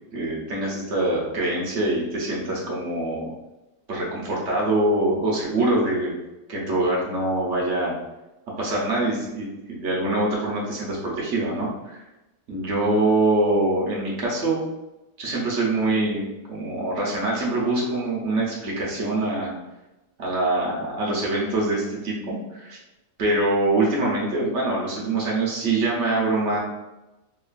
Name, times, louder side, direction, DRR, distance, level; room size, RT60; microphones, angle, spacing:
voice 1, 0.1-3.3 3.9-6.1 6.5-7.9 8.6-12.0 12.5-14.6 15.2-19.5 20.2-22.8 23.2-26.6, right 2 dB, 55° right, -4 dB, 0.9 m, -24 dB
3.0 x 2.4 x 2.4 m, 1.0 s
omnidirectional pair, 1.8 m